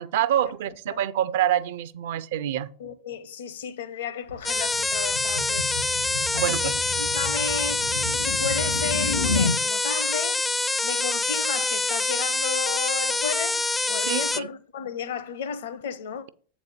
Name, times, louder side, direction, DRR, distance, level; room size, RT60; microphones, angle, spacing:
voice 1, 0.0-2.7 6.4-6.7 14.1-14.5, right 11 dB, 55° right, 0.4 m, -26 dB
voice 2, 2.8-5.8 6.3-10.4 10.8-16.2, left 7 dB, 60° left, 0.7 m, -33 dB
sound 1, 4.3-9.6, left 2 dB, 80° left, 1.7 m, -31 dB
sound 2, 4.4-14.4, left 3 dB, 10° left, 0.3 m, -26 dB
7.9 x 4.1 x 6.7 m
figure-of-eight pair, 90°, 0 cm